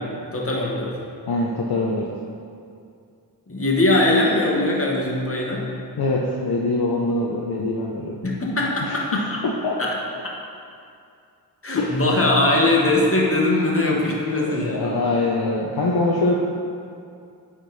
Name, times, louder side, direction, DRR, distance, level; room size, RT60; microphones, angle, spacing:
voice 1, 0.2-1.0 3.5-5.7 8.2-9.4 9.8-9.9 11.6-14.9, left 2 dB, 30° left, -2 dB, 1.2 m, -21 dB
voice 2, 1.2-2.2 6.0-8.2 8.8-9.8 11.8-12.0 14.4-16.4, left 2 dB, 60° left, -1 dB, 0.6 m, -24 dB
9.1 x 3.6 x 4.0 m, 2.4 s
wide cardioid pair, 65°, 42 cm